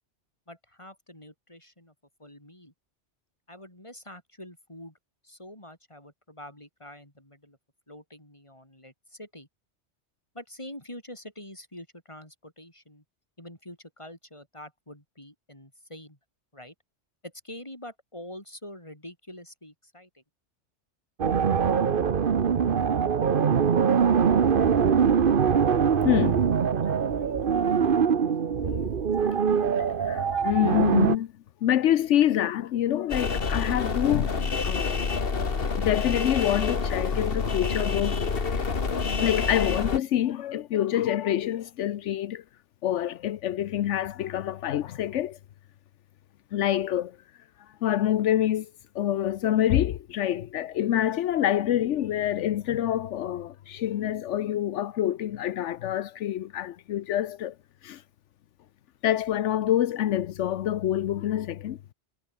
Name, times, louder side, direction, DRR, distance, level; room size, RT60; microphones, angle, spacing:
voice 1, 0.5-1.9 2.2-2.7 3.5-5.0 5.2-7.6 7.9-9.5 10.3-13.0 13.4-16.2 16.5-16.7 17.2-20.2, left 1 dB, 25° left, 6.1 m, -45 dB
sound 1, 21.2-31.2, right 7 dB, 50° right, 1.1 m, -23 dB
voice 2, 26.0-26.4 26.8-27.0 27.3-27.7 28.6-31.3 31.6-35.0 35.3-35.4 35.8-38.3 39.2-42.4 42.8-45.4 46.5-47.2 47.6-57.5 57.8-58.0 59.0-61.8, left 11 dB, 85° left, 1.0 m, -27 dB
sound 2, 33.1-40.0, left 5 dB, 55° left, 1.8 m, -28 dB
omnidirectional pair, 1.2 m